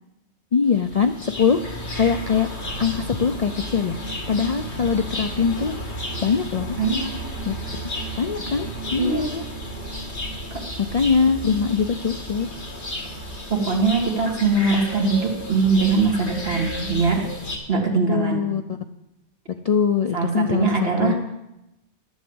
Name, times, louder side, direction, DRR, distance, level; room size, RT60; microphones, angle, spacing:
voice 1, 0.5-1.6 1.9-2.5 2.8-4.0 4.3-5.8 6.2-6.8 7.4-7.5 8.2-9.4 10.9-12.5 18.1-18.8 19.6-21.2, left 6 dB, 50° left, 7 dB, 0.5 m, -22 dB
sound 1, 0.6-17.6, equal, 75° left, 2.4 m, -33 dB
voice 2, 6.8-7.1 9.0-9.3 10.5-10.6 13.5-17.3 17.7-18.5 20.1-21.2, right 4 dB, 60° right, 0 dB, 2.2 m, -21 dB
11.0 x 7.2 x 7.9 m, 0.91 s
omnidirectional pair, 1.1 m